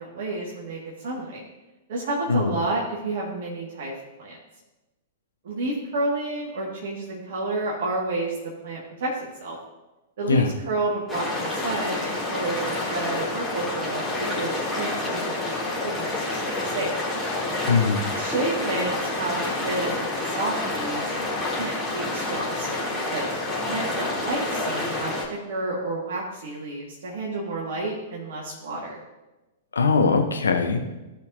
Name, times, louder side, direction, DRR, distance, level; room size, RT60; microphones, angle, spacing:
voice 1, 0.0-1.4 1.9-3.9 4.2-4.4 5.4-9.6 10.2-14.0 14.3-15.4 15.8-16.9 18.2-21.3 21.6-23.2 23.7-29.0, right 2 dB, 55° right, -4 dB, 1.8 m, -30 dB
sound 1, 11.1-25.3, left 2 dB, 10° left, 2.9 m, -28 dB
voice 2, 17.7-18.0 29.7-30.9, left 4 dB, 75° left, 5 dB, 1.0 m, -21 dB
15.5 x 5.7 x 2.7 m, 1.1 s
figure-of-eight pair, 105°, 0 cm